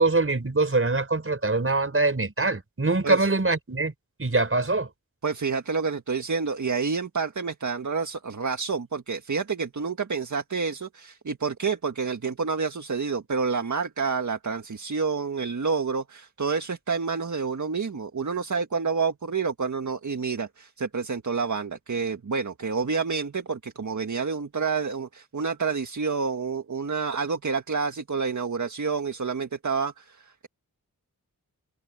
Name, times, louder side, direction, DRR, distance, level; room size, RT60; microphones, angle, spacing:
voice 1, 0.0-3.9 4.2-4.9, right 3 dB, 40° right, 4.5 m, -23 dB
voice 2, 5.2-30.5, right 5 dB, 55° right, 1.7 m, -28 dB
wide cardioid pair, 70°, 35 cm